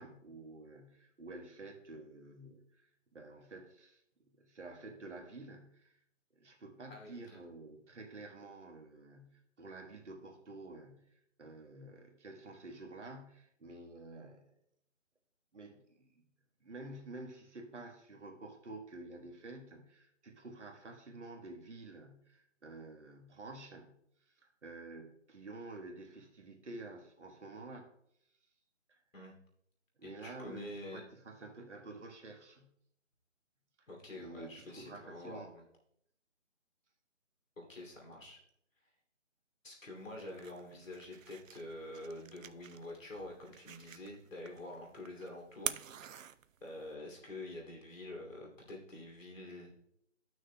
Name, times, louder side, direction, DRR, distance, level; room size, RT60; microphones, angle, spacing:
voice 1, 0.0-2.9 3.1-4.0 4.3-6.0 6.3-11.1 11.4-14.5 15.5-16.2 16.6-24.0 24.4-27.9 28.9-29.0 30.0-32.7 34.1-35.5, right 2 dB, 65° right, 2 dB, 1.4 m, -50 dB
voice 2, 30.0-31.0 33.9-35.7 37.6-38.4 39.6-46.2 46.6-49.7, left 1 dB, 85° left, 0 dB, 2.8 m, -47 dB
sound 1, 40.0-46.9, right 9 dB, 90° right, 0.5 m, -47 dB
13.0 x 6.3 x 2.2 m, 0.74 s
hypercardioid pair, 175°, 38 cm